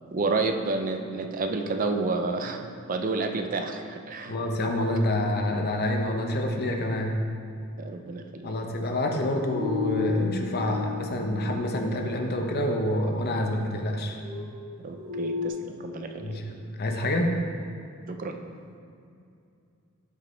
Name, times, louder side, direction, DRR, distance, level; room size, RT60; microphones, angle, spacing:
voice 1, 0.1-4.3 7.8-8.6 14.8-16.4 18.1-18.4, right 3 dB, 40° right, 6 dB, 0.4 m, -30 dB
voice 2, 4.3-7.2 8.4-14.2 16.2-17.3, left 1 dB, 45° left, 2 dB, 0.8 m, -27 dB
sound 1, 9.1-12.5 14.2-15.5, left 5 dB, 65° right, 1.3 m, -34 dB
11.5 x 5.3 x 3.2 m, 2.5 s
head